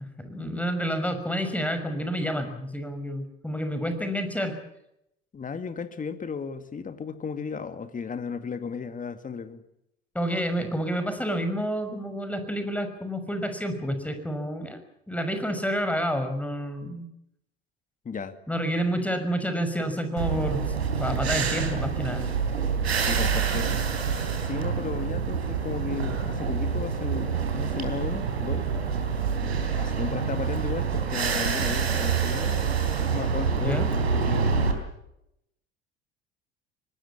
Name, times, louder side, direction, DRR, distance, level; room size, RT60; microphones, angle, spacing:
voice 1, 0.2-4.6 10.1-14.8 15.1-17.0 18.5-20.6 21.0-22.3 33.6-33.9, equal, 5° left, 8 dB, 6.0 m, -29 dB
voice 2, 5.3-9.6 18.0-18.4 23.0-23.8 24.4-28.7 29.4-32.6 33.1-34.7, left 5 dB, 25° left, 10 dB, 2.2 m, -35 dB
sound 1, 20.2-34.7, right 6 dB, 80° right, 3.7 m, -27 dB
25.0 x 20.0 x 7.4 m, 0.80 s
figure-of-eight pair, 65°, 32 cm